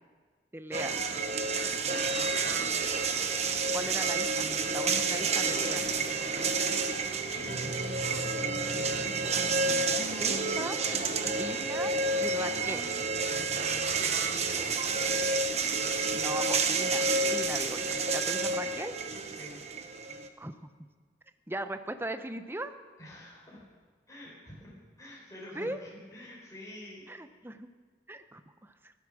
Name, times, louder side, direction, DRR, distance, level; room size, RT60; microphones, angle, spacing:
voice 1, 0.5-1.0 3.7-5.8 10.2-10.8 11.2-11.9 12.2-12.9 16.1-19.0 20.4-20.5 21.5-22.7 25.6-25.8 27.1-27.7 28.1-28.9, right 1 dB, 15° right, 9 dB, 0.7 m, -38 dB
sound 1, 0.7-20.3, right 4 dB, 40° right, 1.0 m, -30 dB
voice 2, 1.7-2.7 5.4-6.7 7.5-9.1 14.8-15.3 19.2-19.6 23.0-23.6 24.1-27.1, left 1 dB, 20° left, -5 dB, 4.0 m, -48 dB
sound 2, 7.3-9.9, left 1 dB, 70° left, 1.1 m, -43 dB
16.0 x 12.0 x 6.3 m, 1.5 s
head